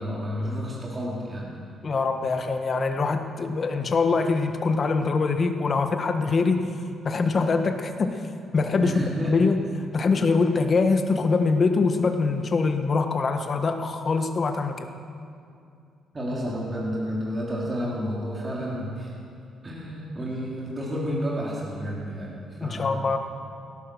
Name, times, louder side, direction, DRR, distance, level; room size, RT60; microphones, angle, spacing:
voice 1, 0.0-1.5 8.8-9.3 16.1-19.1 19.6-22.9, equal, 30° right, -5 dB, 3.3 m, -31 dB
voice 2, 1.8-6.7 7.0-8.2 8.5-9.6 9.9-14.9 22.6-23.2, left 4 dB, 40° left, 6 dB, 1.4 m, -23 dB
17.5 x 12.0 x 6.3 m, 2.5 s
cardioid pair, 90°, 0 cm